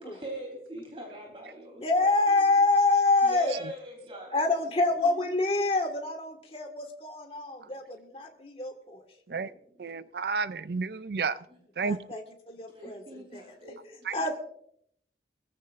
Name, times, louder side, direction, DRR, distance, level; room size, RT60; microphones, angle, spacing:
voice 1, 0.0-1.8 3.3-4.4 5.0-5.1 9.3-9.5 12.7-13.8 14.2-14.3, right 1 dB, 30° right, 0 dB, 3.7 m, -42 dB
voice 2, 1.8-3.7 4.3-9.1 11.8-14.4, left 3 dB, 35° left, 3 dB, 1.8 m, -27 dB
voice 3, 9.8-11.4 11.8-12.0 14.0-14.1, right 4 dB, 60° right, 15 dB, 0.5 m, -31 dB
22.5 x 15.0 x 2.6 m, 0.69 s
head